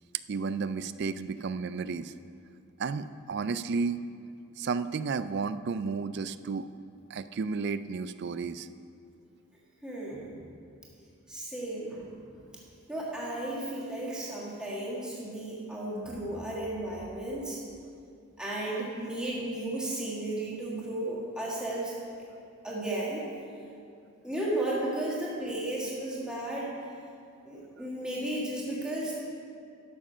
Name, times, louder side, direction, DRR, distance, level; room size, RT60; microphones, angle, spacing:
voice 1, 0.3-2.1 2.8-4.0 4.6-6.7 7.1-8.7, right 4 dB, 50° right, 13 dB, 0.3 m, -32 dB
voice 2, 9.8-10.4 11.3-12.1 12.9-17.6 18.4-21.9 22.6-23.2 24.2-26.8 27.4-29.1, right 1 dB, 5° right, -6 dB, 1.6 m, -34 dB
12.5 x 7.3 x 5.6 m, 2.4 s
head